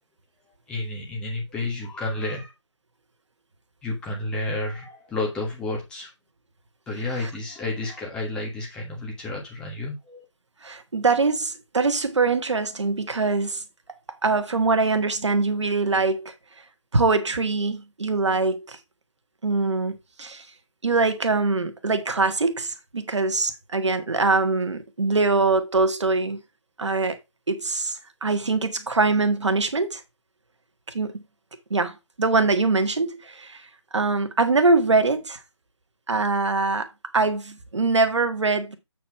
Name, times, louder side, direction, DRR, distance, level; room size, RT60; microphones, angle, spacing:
voice 1, 0.4-2.5 3.8-6.1 6.9-10.2, left 2 dB, 5° left, 1.5 m, -31 dB
voice 2, 10.6-13.6 14.2-16.3 16.9-18.8 19.4-20.5 20.8-26.4 26.8-27.2 27.5-30.0 30.9-31.2 31.7-33.7 33.9-35.4 36.1-38.8, right 3 dB, 70° right, 1.5 m, -23 dB
8.2 x 4.5 x 4.6 m
figure-of-eight pair, 160°, 15 cm